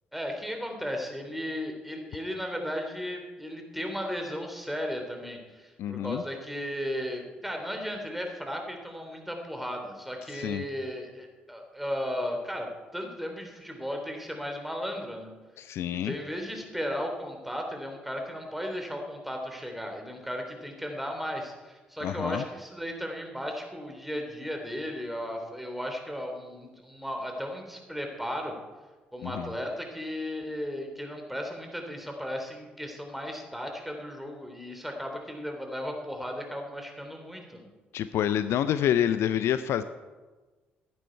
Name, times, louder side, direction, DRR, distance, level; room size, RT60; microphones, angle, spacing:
voice 1, 0.1-15.3 16.0-28.5 29.1-37.7, equal, 5° right, 3 dB, 3.4 m, -35 dB
voice 2, 5.8-6.2 10.3-10.6 15.6-16.1 22.0-22.4 29.2-29.5 37.9-39.8, left 10 dB, 60° left, 13 dB, 0.5 m, -27 dB
14.5 x 11.5 x 4.6 m, 1.3 s
figure-of-eight pair, 45°, 5 cm